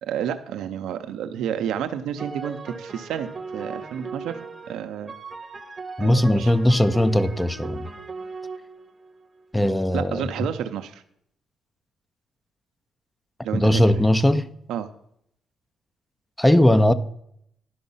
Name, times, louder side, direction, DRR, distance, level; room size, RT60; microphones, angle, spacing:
voice 1, 0.0-4.4 4.7-5.1 6.0-6.5 9.9-11.0 13.4-13.8 14.7-14.9, right 9 dB, 85° right, 0.7 m, -30 dB
sound 1, 2.2-9.6, right 4 dB, 30° right, 0.9 m, -38 dB
voice 2, 6.0-7.9 9.5-10.5 13.5-14.5 16.4-16.9, left 1 dB, 10° left, 0.5 m, -19 dB
11.5 x 5.2 x 5.6 m
cardioid pair, 90°, 0 cm